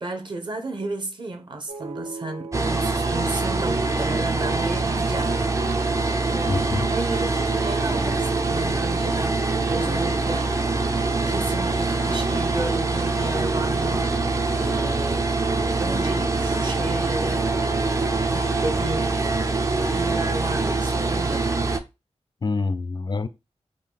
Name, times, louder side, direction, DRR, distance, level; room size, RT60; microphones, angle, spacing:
voice 1, 0.0-5.9 6.3-10.6 11.3-14.2 14.6-15.3 15.8-17.5 18.2-19.2 19.9-21.6, right 2 dB, 45° right, 0.8 m, -33 dB
sound 1, 1.7-19.9, right 3 dB, 80° right, 1.0 m, -37 dB
sound 2, 2.5-21.8, right 3 dB, 30° right, 0.4 m, -24 dB
voice 2, 6.5-6.9 22.4-23.3, left 3 dB, 40° left, 0.4 m, -26 dB
3.7 x 2.3 x 3.4 m
wide cardioid pair, 120°, 11 cm